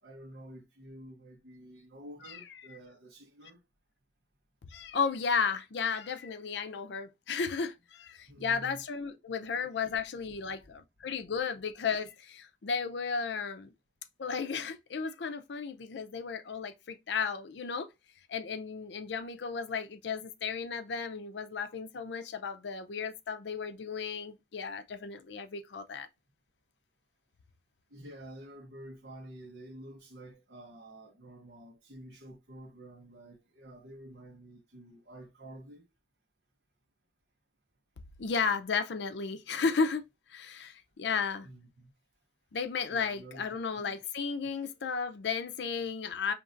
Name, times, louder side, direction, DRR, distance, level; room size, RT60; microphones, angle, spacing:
voice 1, 0.0-3.6 8.3-8.8 27.9-35.8 41.4-41.9 42.9-44.0, right 1 dB, 70° right, 0.9 m, -49 dB
voice 2, 4.7-13.7 14.2-17.9 18.3-26.1 38.2-40.0 40.3-41.5 42.5-46.3, left 5 dB, 75° left, 0.5 m, -34 dB
5.1 x 2.9 x 2.5 m
head